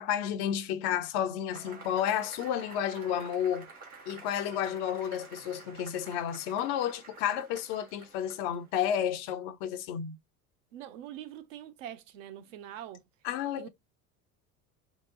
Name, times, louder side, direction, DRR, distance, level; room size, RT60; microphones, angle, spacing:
voice 1, 0.0-3.7 4.1-10.2 13.2-13.7, left 9 dB, 55° left, 0.7 m, -31 dB
Cheering / Applause / Crowd, 1.5-8.7, right 4 dB, 85° right, 1.2 m, -50 dB
voice 2, 10.7-13.1 13.6-13.7, right 11 dB, 60° right, 0.8 m, -44 dB
4.0 x 2.2 x 3.7 m
figure-of-eight pair, 65°, 43 cm